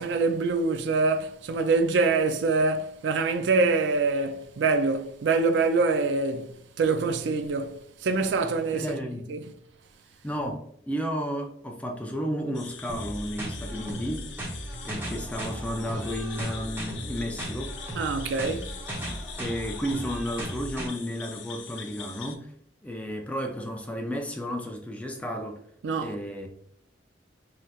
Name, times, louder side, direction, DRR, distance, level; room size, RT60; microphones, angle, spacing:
voice 1, 0.0-9.0 9.3-9.4 18.0-18.8 25.8-26.2, right 3 dB, 75° right, 0.4 m, -25 dB
voice 2, 8.7-9.3 10.2-14.5 14.8-17.8 19.4-22.5 22.8-25.6 26.0-26.5, equal, 10° left, 0.3 m, -33 dB
sound 1, 12.5-22.4, left 8 dB, 85° left, 0.4 m, -43 dB
sound 2, 12.9-20.9, right 1 dB, 10° right, 0.7 m, -36 dB
3.2 x 2.7 x 2.3 m
head